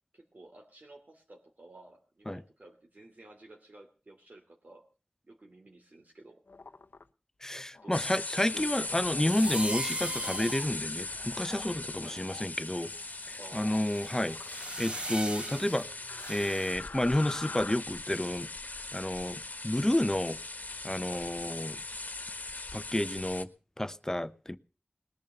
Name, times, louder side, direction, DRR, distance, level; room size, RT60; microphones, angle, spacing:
voice 1, 0.1-4.8 5.2-6.4 7.8-8.0 8.5-8.8 11.9-12.2 13.4-13.9 21.0-21.3, right 2 dB, 65° right, 2.7 m, -53 dB
sound 1, 6.5-7.0 7.7-8.1 8.8-9.3 10.2-10.6 11.1-11.7 12.0-12.5 13.4-13.9 14.3-15.2 16.1-17.8, left 4 dB, 90° left, 0.8 m, -45 dB
voice 2, 7.4-12.9 13.3-14.4 14.8-15.9 16.3-18.5 18.9-20.4 20.8-21.8 22.7-23.5 23.8-24.6, left 1 dB, 15° left, 0.8 m, -30 dB
sound 2, 7.9-23.4, left 3 dB, 65° left, 1.3 m, -39 dB
sound 3, 9.3-12.2 12.8-16.7, right 1 dB, 35° right, 1.0 m, -40 dB
20.0 x 10.5 x 6.8 m
wide cardioid pair, 60°, 3 cm